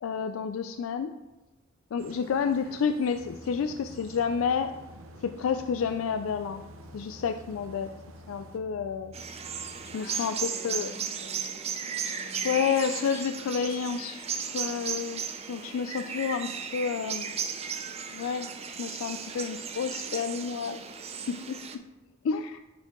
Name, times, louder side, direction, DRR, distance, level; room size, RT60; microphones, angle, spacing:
voice 1, 0.0-1.1 1.9-4.7 5.2-6.6 6.9-7.9 8.3-9.1 9.9-10.3 10.6-10.9 12.4-17.5 18.1-18.5 18.8-20.8 21.3-21.8 22.2-22.6, left 6 dB, 90° left, 8 dB, 0.4 m, -30 dB
sound 1, 2.0-8.6, right 3 dB, 90° right, 0.7 m, -51 dB
voice 2, 2.4-3.0 9.9-11.7 12.0-12.6, left 1 dB, 55° left, 0 dB, 1.6 m, -49 dB
sound 2, 3.2-10.0, left 3 dB, 35° left, 0.6 m, -51 dB
sound 3, 9.1-21.8, right 6 dB, 30° right, 0.5 m, -35 dB
10.5 x 4.5 x 3.7 m, 1.1 s
head